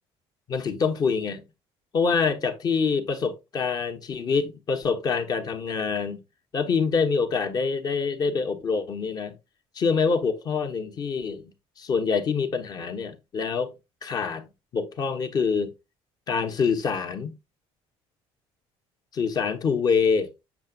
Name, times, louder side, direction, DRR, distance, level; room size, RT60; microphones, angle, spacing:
voice 1, 0.5-1.4 1.9-6.2 6.5-9.3 9.7-11.4 11.8-13.7 14.0-15.7 16.3-17.3 19.1-20.3, left 5 dB, 35° left, 1.1 m, -25 dB
7.3 x 6.8 x 2.4 m
cardioid pair, 150°, 11 cm